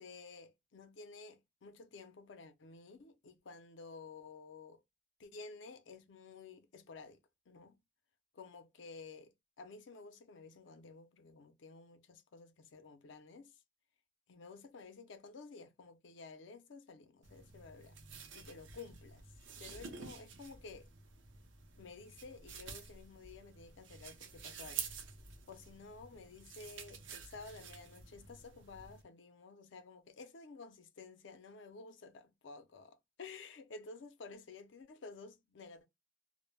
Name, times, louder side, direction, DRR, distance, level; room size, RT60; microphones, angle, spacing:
voice 1, 0.0-4.8 5.2-7.2 7.5-7.8 8.3-13.6 14.3-18.0 18.3-19.3 19.6-20.9 21.8-24.9 25.5-35.9, left 4 dB, 75° left, 0.5 m, -53 dB
sound 1, 17.2-29.0, right 6 dB, 75° right, 0.5 m, -50 dB
2.1 x 2.0 x 3.1 m
head